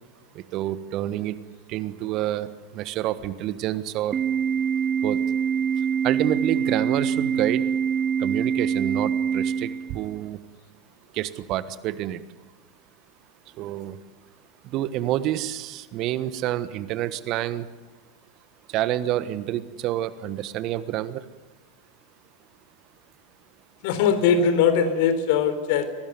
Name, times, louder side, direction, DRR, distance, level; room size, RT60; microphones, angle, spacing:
voice 1, 0.3-1.4 1.7-4.2 5.0-5.2 5.8-7.7 8.2-10.4 11.1-12.2 13.6-14.0 14.6-17.7 18.7-21.2, right 13 dB, 45° right, 15 dB, 1.3 m, -28 dB
Organ, 4.1-10.1, right 7 dB, 25° right, 0.8 m, -25 dB
voice 2, 23.8-25.8, left 7 dB, 55° left, 10 dB, 3.8 m, -20 dB
24.0 x 19.5 x 9.5 m, 1.3 s
figure-of-eight pair, 90°, 0 cm